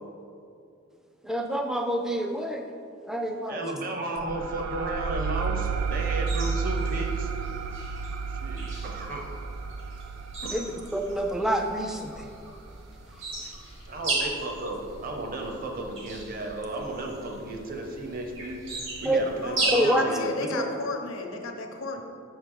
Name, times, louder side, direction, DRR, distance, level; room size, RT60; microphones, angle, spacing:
voice 1, 1.2-2.6 3.0-3.6 10.5-12.3 19.1-19.3 19.7-20.6, right 1 dB, ahead, 3 dB, 0.3 m, -27 dB
voice 2, 3.5-7.3 8.3-9.3 10.4-10.8 13.8-20.6 21.9-22.0, right 2 dB, 45° right, 2 dB, 0.7 m, -34 dB
sound 1, 4.2-13.4, right 5 dB, 85° right, 0.4 m, -32 dB
sound 2, 5.8-19.7, right 3 dB, 65° right, 1.4 m, -37 dB
voice 3, 19.4-22.0, left 3 dB, 75° left, 3 dB, 0.7 m, -33 dB
6.7 x 4.7 x 3.8 m, 2.5 s
head